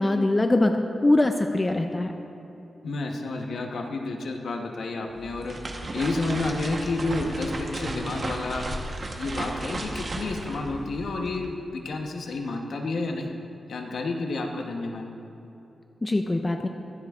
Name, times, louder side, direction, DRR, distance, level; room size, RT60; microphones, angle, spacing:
voice 1, 0.0-2.1 16.0-16.7, left 2 dB, 20° left, 5 dB, 0.4 m, -22 dB
voice 2, 2.8-5.6 5.9-8.7 9.1-13.3 13.7-15.1, left 3 dB, 70° left, 3 dB, 0.9 m, -30 dB
sound 1, 5.1-11.5, right 2 dB, 35° right, 0.9 m, -34 dB
23.0 x 7.8 x 2.4 m, 2.9 s
wide cardioid pair, 165°, 0 cm